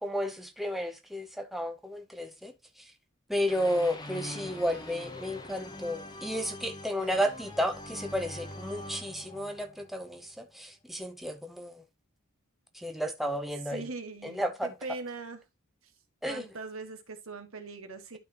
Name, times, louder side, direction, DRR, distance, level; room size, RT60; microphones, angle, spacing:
voice 1, 0.0-2.5 3.3-11.8 12.7-13.8 14.4-14.7 16.2-16.4, equal, ahead, 0.7 m, -32 dB
sound 1, 3.5-10.4, left 1 dB, 20° left, 1.0 m, -44 dB
voice 2, 13.7-15.4 16.3-18.2, right 3 dB, 75° right, 1.5 m, -41 dB
11.5 x 4.2 x 3.0 m
head